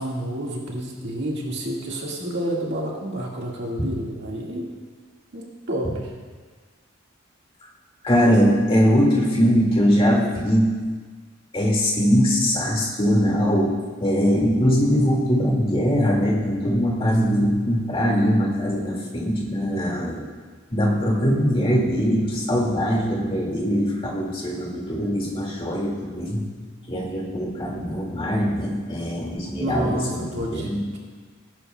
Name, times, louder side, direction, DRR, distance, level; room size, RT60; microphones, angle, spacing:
voice 1, 0.0-4.7 5.3-6.1 29.6-31.0, right 1 dB, 55° right, -3 dB, 1.8 m, -29 dB
voice 2, 8.0-10.7 11.5-13.7 14.0-20.2 20.7-26.4 26.9-30.8, equal, 25° left, -2 dB, 2.1 m, -21 dB
19.5 x 10.0 x 2.3 m, 1.5 s
head